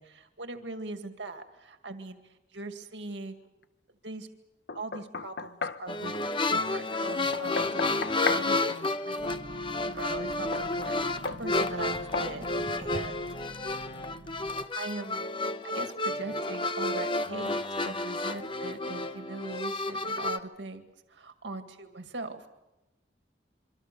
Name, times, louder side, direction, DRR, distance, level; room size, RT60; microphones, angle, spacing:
voice 1, 0.0-2.2 2.5-3.4 4.0-4.3 4.7-6.1 6.5-8.0 8.3-9.7 9.9-12.5 12.8-13.2 14.7-15.2 15.7-20.8 21.1-22.5, right 2 dB, 90° right, 6 dB, 2.1 m, -40 dB
Knock, 4.7-5.9 7.3-8.5 10.5-10.7 11.3-11.5 12.1-12.4, left 4 dB, 70° left, 0.9 m, -34 dB
sound 1, 5.9-20.4, left 2 dB, 30° left, 0.9 m, -31 dB
sound 2, 9.2-14.7, right 1 dB, 60° right, 1.2 m, -46 dB
27.0 x 24.5 x 6.8 m, 0.96 s
head